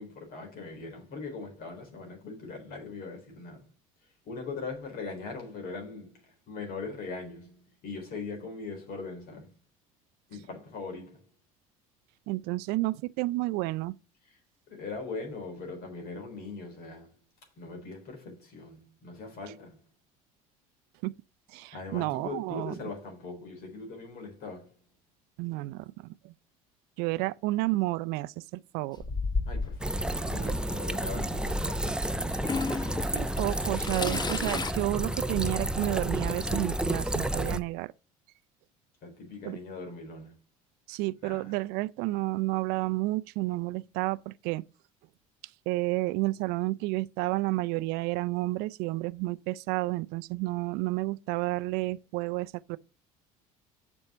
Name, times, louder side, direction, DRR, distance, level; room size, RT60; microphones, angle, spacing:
voice 1, 0.0-3.7 4.2-9.5 10.3-11.3 14.2-14.4 14.7-17.2 17.6-19.8 21.7-24.8 29.5-32.5 39.0-40.3 41.2-41.5, left 3 dB, 60° left, 3.8 m, -41 dB
voice 2, 12.3-13.9 21.0-21.1 21.5-22.7 25.4-26.3 27.0-29.0 33.1-37.9 39.5-39.6 40.9-44.6 45.7-52.8, right 20 dB, 65° right, 0.4 m, -31 dB
Toilet flush / Trickle dribble, 29.0-29.9 30.9-31.0 32.3-34.7, left 4 dB, 25° left, 0.9 m, -33 dB
sound 1, 29.8-37.6, right 1 dB, 5° right, 0.7 m, -31 dB
7.3 x 5.4 x 6.6 m
hypercardioid pair, 70°, 18 cm